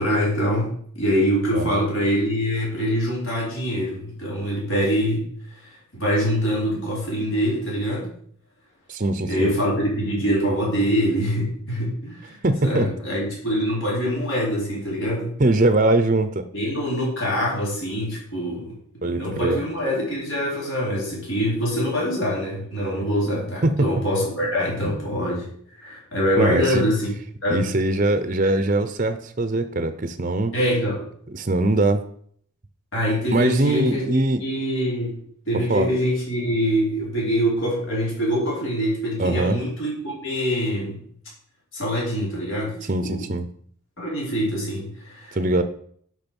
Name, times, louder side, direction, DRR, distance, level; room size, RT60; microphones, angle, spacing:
voice 1, 0.0-5.3 5.5-8.1 9.2-12.4 12.6-15.3 16.5-18.8 19.0-25.5 25.8-27.1 27.4-27.7 30.5-31.0 32.9-35.2 35.4-41.0 41.7-43.2 44.0-45.4, equal, 65° left, -5 dB, 5.2 m, -24 dB
voice 2, 1.5-1.8 8.9-9.5 12.4-12.9 15.4-16.5 19.0-19.6 23.6-23.9 24.8-25.0 26.4-26.8 27.5-30.5 31.3-32.1 33.3-34.4 35.7-35.9 39.2-39.6 42.9-43.5 45.3-45.6, right 2 dB, 40° right, 10 dB, 0.7 m, -21 dB
10.5 x 6.1 x 5.4 m, 0.62 s
head